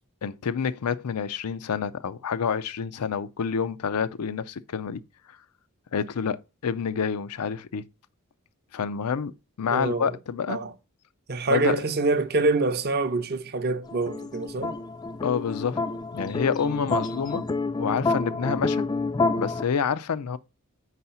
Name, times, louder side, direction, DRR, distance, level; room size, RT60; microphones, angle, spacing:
voice 1, 0.2-5.0 5.9-7.8 8.7-10.6 11.5-11.8 15.2-15.8 16.1-17.4 17.8-18.8 19.4-20.4, left 6 dB, 90° left, 0.5 m, -28 dB
voice 2, 9.7-10.2 10.5-10.7 11.3-14.7, right 3 dB, 45° right, 0.6 m, -25 dB
sound 1, 13.9-19.6, left 3 dB, 20° left, 0.3 m, -28 dB
4.8 x 4.1 x 5.6 m
head